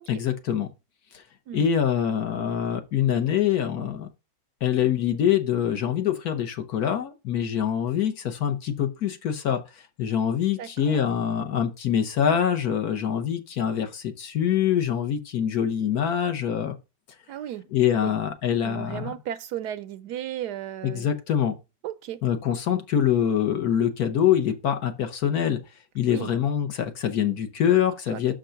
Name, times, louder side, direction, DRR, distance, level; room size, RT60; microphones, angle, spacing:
voice 1, 0.1-0.7 1.5-4.1 4.6-9.6 10.0-16.7 17.7-19.1 20.8-21.5 22.2-25.6 25.9-28.3, left 9 dB, 60° left, 1.4 m, -24 dB
voice 2, 10.6-11.0 17.3-17.7 18.0-18.1 18.6-21.1 21.8-22.2 26.1-26.3 28.1-28.3, right 11 dB, 75° right, 1.1 m, -35 dB
6.4 x 5.2 x 5.7 m
omnidirectional pair, 1.9 m